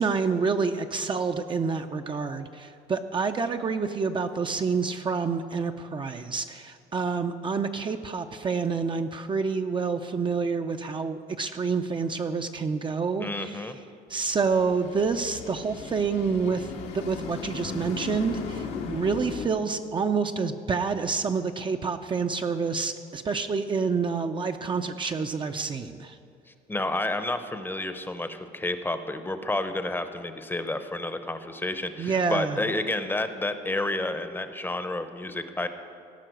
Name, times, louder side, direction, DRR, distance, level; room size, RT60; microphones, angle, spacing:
voice 1, 0.0-13.7 14.1-16.7 16.9-26.2 32.0-32.6, right 5 dB, 30° right, 6 dB, 0.5 m, -28 dB
voice 2, 13.2-13.8 26.7-35.7, left 2 dB, 10° left, 9 dB, 0.7 m, -30 dB
sound 1, 14.2-19.5, left 5 dB, 90° left, 1.6 m, -37 dB
16.5 x 5.8 x 7.8 m, 2.5 s
cardioid pair, 110°, 17 cm